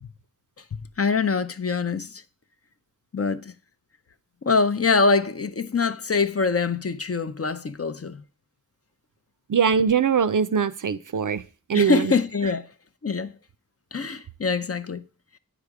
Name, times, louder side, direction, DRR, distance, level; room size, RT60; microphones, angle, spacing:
voice 1, 1.0-2.1 3.1-3.4 4.4-8.2 11.7-12.6 13.0-13.3 13.9-15.0, left 4 dB, 40° left, 0.5 m, -24 dB
voice 2, 9.5-11.4 11.7-12.1, right 7 dB, 60° right, 0.5 m, -22 dB
9.0 x 5.0 x 4.7 m
wide cardioid pair, 45°, 35 cm